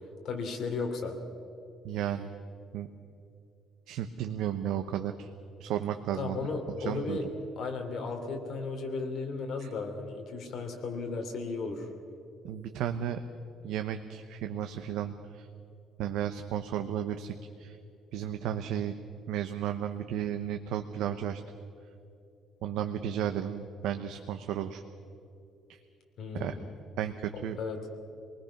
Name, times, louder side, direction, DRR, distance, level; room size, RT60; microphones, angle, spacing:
voice 1, 0.2-1.1 6.2-7.3 7.6-11.9 26.2-26.6 27.3-27.9, left 4 dB, 45° left, 3 dB, 3.1 m, -35 dB
voice 2, 1.8-2.3 2.7-2.9 3.9-5.3 5.6-6.4 6.8-7.2 9.6-9.7 12.4-13.2 13.6-15.5 16.0-17.8 18.1-18.9 19.3-21.4 22.6-24.8 25.7-25.8 26.3-26.5 27.0-27.6, right 10 dB, 75° right, 7 dB, 0.9 m, -33 dB
28.0 x 19.5 x 5.9 m, 2.7 s
cardioid pair, 175°, 0 cm